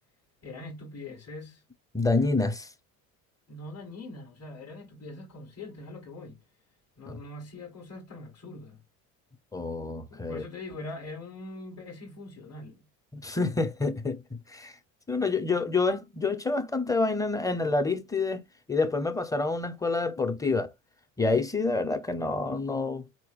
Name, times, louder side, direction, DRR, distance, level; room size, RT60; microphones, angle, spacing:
voice 1, 0.4-1.6 3.5-6.4 7.0-8.8 10.1-12.9, left 2 dB, 35° left, 1.6 m, -42 dB
voice 2, 1.9-2.7 7.1-7.2 9.5-10.4 13.1-14.2 14.5-14.7 15.1-18.4 18.7-20.7 21.2-23.0, left 3 dB, 10° left, 0.7 m, -27 dB
4.4 x 2.9 x 2.4 m
supercardioid pair, 80°, 41 cm